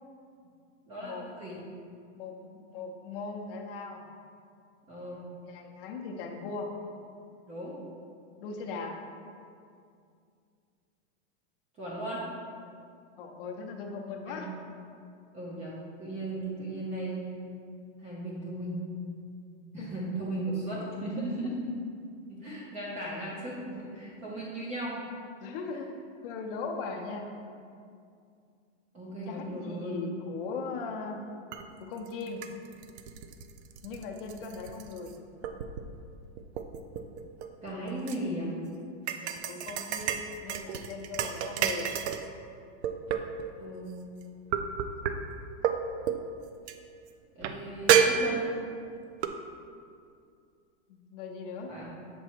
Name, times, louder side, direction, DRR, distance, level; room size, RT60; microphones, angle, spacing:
voice 1, 0.9-1.6 4.9-5.2 7.5-7.8 11.8-12.3 14.2-14.4 15.3-17.2 18.0-18.8 19.7-21.7 22.3-25.0 28.9-30.0 37.6-38.5 43.6-44.1 47.4-48.5 51.7-51.9, right 1 dB, 20° right, -6 dB, 0.7 m, -36 dB
voice 2, 2.1-4.0 5.5-6.7 8.4-9.0 13.2-14.5 19.8-19.9 20.9-21.0 25.4-25.9 26.2-27.3 29.3-31.2 31.8-32.5 33.8-35.1 39.2-41.9 50.9-51.8, left 4 dB, 50° left, 2 dB, 0.8 m, -39 dB
sound 1, 31.5-31.6 32.1-35.1 35.4-36.0 36.4-38.2 39.1-42.3 42.8-43.5 44.5-45.1 45.6-45.8 46.1-46.2 46.7-46.8 47.4-47.5 47.9-48.7 49.2-49.3, right 8 dB, 70° right, 0.5 m, -29 dB
7.0 x 3.1 x 4.5 m, 2.4 s
supercardioid pair, 160°, 35 cm